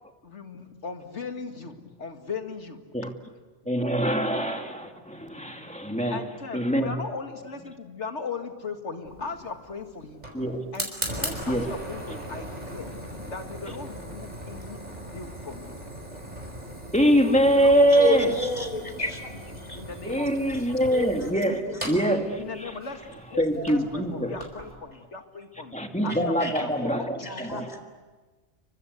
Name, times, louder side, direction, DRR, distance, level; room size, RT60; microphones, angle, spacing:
voice 1, 0.2-3.1 6.1-10.4 10.7-10.9 11.2-14.8 15.1-15.8 17.5-18.3 18.7-18.8 19.5-20.5 22.3-23.0 23.3-25.8 26.0-26.3 26.6-27.4, left 4 dB, 90° left, 5 dB, 2.4 m, -38 dB
voice 2, 3.7-6.2 6.5-6.9 10.3-10.7 11.3-11.7 16.1-16.2 16.9-18.4 20.0-22.7 23.4-24.4 25.7-27.8, right 1 dB, 5° left, 4 dB, 2.4 m, -24 dB
Fire, 9.0-24.7, right 1 dB, 35° right, 5.4 m, -39 dB
voice 3, 17.9-19.3 19.6-19.8 20.9-21.5 26.4-26.5 27.2-27.8, left 2 dB, 35° left, 7 dB, 3.7 m, -30 dB
29.5 x 24.5 x 8.2 m, 1.3 s
omnidirectional pair, 1.2 m